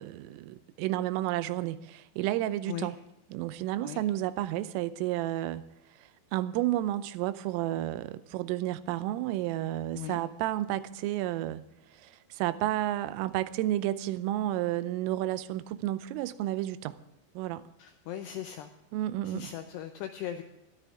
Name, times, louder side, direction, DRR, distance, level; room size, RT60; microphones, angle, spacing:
voice 1, 0.0-3.0 3.3-5.6 6.0-11.6 11.9-17.0 17.4-17.7 18.9-19.5, right 14 dB, 85° right, 3.2 m, -31 dB
voice 2, 17.8-18.7 19.2-20.4, left 11 dB, 85° left, 2.4 m, -38 dB
20.5 x 13.0 x 3.6 m
omnidirectional pair, 5.8 m